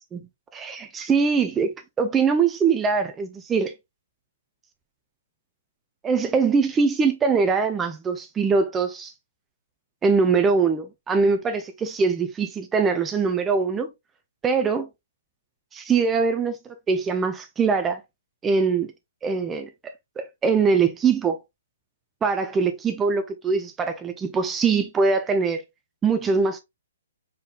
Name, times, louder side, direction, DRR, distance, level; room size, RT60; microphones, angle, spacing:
voice 1, 0.1-3.7 6.0-9.1 10.0-13.9 14.4-14.9 15.7-16.6 16.9-18.0 18.4-18.9 19.2-19.7 20.2-21.4 22.2-25.6 26.0-26.6, right 5 dB, 15° right, 0.7 m, -22 dB
5.0 x 4.3 x 2.4 m
figure-of-eight pair, 130°, 0 cm